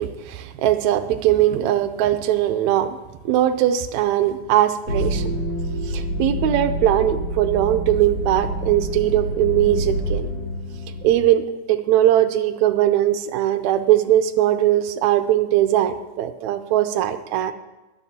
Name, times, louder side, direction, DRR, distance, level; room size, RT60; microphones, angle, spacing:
voice 1, 0.0-3.0 3.2-5.3 5.9-10.3 11.0-17.5, right 12 dB, 75° right, 8 dB, 1.8 m, -20 dB
sound 1, 4.9-11.1, equal, 65° left, 5.9 m, -27 dB
22.5 x 9.1 x 2.8 m, 1.1 s
omnidirectional pair, 3.6 m